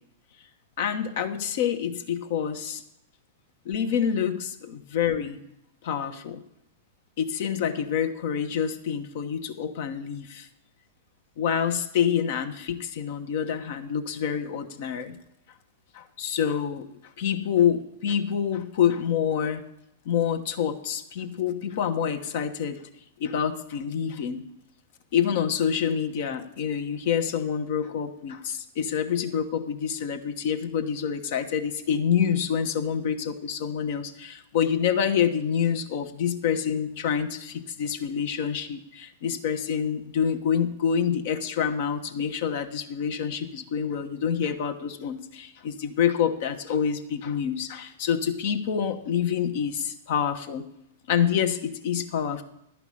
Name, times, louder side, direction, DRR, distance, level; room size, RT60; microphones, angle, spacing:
voice 1, 0.8-2.8 3.6-5.4 5.8-6.4 7.2-10.5 11.4-15.2 15.9-16.9 17.2-19.6 20.0-22.8 23.2-24.4 25.1-50.6 51.1-52.4, left 8 dB, 60° left, 7 dB, 1.2 m, -27 dB
11.0 x 5.9 x 8.5 m, 0.80 s
hypercardioid pair, 110°, 0 cm